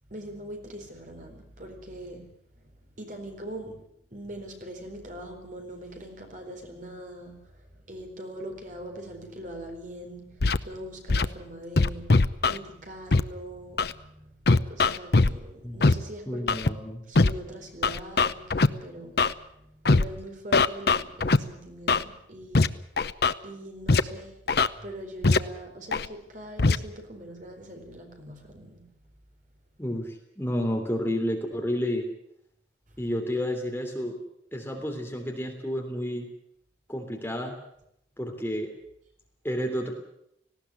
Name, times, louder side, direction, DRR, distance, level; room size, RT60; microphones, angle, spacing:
voice 1, 0.1-2.7 3.0-16.6 17.1-22.8 23.4-24.4 24.8-28.8, right 1 dB, 45° right, 3 dB, 4.2 m, -42 dB
Scratching (performance technique), 10.4-10.6 11.1-11.3 11.8-12.6 13.1-13.2 13.8-13.9 14.5-15.3 15.8-15.9 16.5-16.7 17.2-17.3 17.8-18.7 19.2-19.3 19.9-20.0 20.5-21.4 21.9-22.0 22.5-22.7 23.0-23.3 23.9-24.0 24.5-24.7 25.2-25.4 25.9-26.1 26.6-26.8, left 3 dB, 55° left, 0.8 m, -20 dB
voice 2, 16.3-17.0 29.8-32.0 33.0-34.2 34.5-36.3 36.9-37.5 38.2-38.7 39.4-39.9, equal, 10° left, 2 dB, 3.2 m, -30 dB
19.0 x 16.5 x 9.7 m, 0.74 s
head